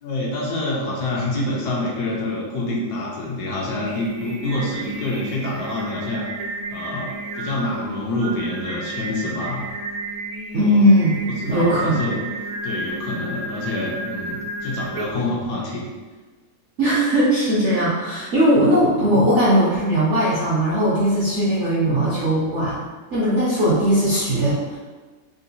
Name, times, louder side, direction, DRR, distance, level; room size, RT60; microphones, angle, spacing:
voice 1, 0.0-6.2 6.7-9.7 10.6-10.9 11.3-12.3 12.6-15.9, left 2 dB, 70° left, -4 dB, 1.1 m, -27 dB
Singing, 3.6-15.4, right 2 dB, 90° right, 1.3 m, -32 dB
voice 2, 10.5-12.0 16.8-22.8 23.1-24.8, equal, 70° right, -7 dB, 0.7 m, -19 dB
3.7 x 2.4 x 2.6 m, 1.3 s
omnidirectional pair, 1.9 m